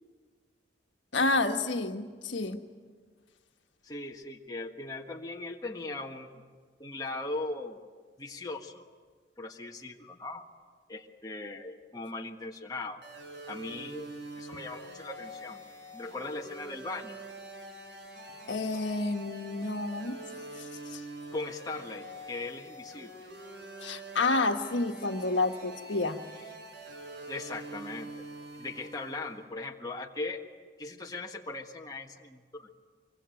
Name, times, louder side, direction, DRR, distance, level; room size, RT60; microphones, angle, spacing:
voice 1, 1.1-2.6 18.5-20.2 20.6-21.0 23.8-26.2, left 3 dB, 80° left, 5 dB, 1.5 m, -29 dB
voice 2, 3.8-6.4 6.8-7.8 8.2-8.9 9.4-10.4 10.9-13.0 13.5-14.1 14.3-15.6 15.9-17.2 21.3-23.1 27.3-28.2 28.5-30.4 30.8-32.7, left 2 dB, 20° left, 1 dB, 1.5 m, -39 dB
sound 1, 13.0-29.4, right 1 dB, 70° right, 5.5 m, -45 dB
24.5 x 23.5 x 9.1 m, 1.5 s
head